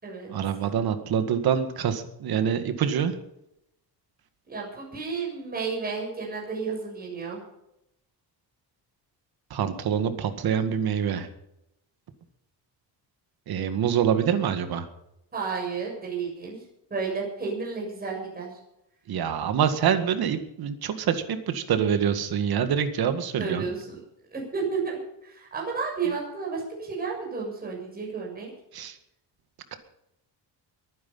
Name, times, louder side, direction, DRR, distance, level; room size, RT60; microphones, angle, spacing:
voice 1, 0.3-3.1 9.5-11.3 13.5-14.9 19.1-23.7 28.7-29.0, right 8 dB, 60° right, 9 dB, 2.0 m, -25 dB
voice 2, 4.5-7.4 15.3-16.6 16.9-18.6 23.4-24.0 24.3-28.5, right 5 dB, 20° right, -2 dB, 7.0 m, -32 dB
22.5 x 10.0 x 5.5 m, 0.82 s
cardioid pair, 155°, 42 cm